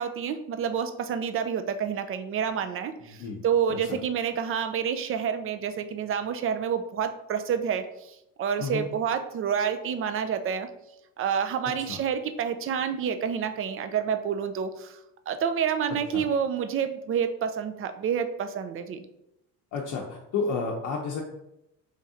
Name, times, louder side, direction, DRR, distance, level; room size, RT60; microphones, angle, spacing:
voice 1, 0.0-10.7 11.2-15.0 15.3-19.0, right 7 dB, 40° right, 8 dB, 0.4 m, -28 dB
voice 2, 19.7-21.2, left 4 dB, 60° left, -2 dB, 0.7 m, -31 dB
3.2 x 2.7 x 3.6 m, 0.84 s
cardioid pair, 100°, 35 cm